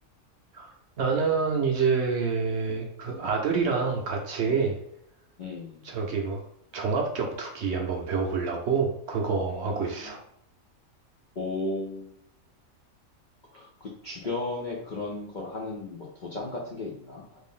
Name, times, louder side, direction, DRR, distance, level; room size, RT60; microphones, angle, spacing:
voice 1, 1.0-4.8 5.8-6.4 6.7-10.2, right 5 dB, 60° right, 1 dB, 0.8 m, -27 dB
voice 2, 5.4-5.8 9.5-10.1 11.4-12.1 13.5-17.4, left 2 dB, 60° left, -3 dB, 0.5 m, -35 dB
3.3 x 2.5 x 3.6 m, 0.74 s
omnidirectional pair, 1.5 m